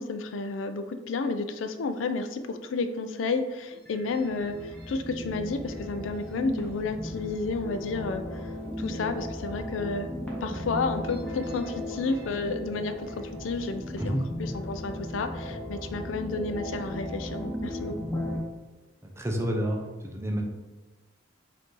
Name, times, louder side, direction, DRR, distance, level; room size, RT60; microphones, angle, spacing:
voice 1, 0.0-8.4 8.8-10.1 10.4-17.9, left 3 dB, 85° left, 8 dB, 0.4 m, -31 dB
sound 1, 3.7-18.4, left 1 dB, 10° left, 0.9 m, -36 dB
voice 2, 19.2-19.8 20.1-20.4, equal, 15° right, 1 dB, 0.5 m, -28 dB
5.1 x 2.6 x 3.8 m, 1.2 s
head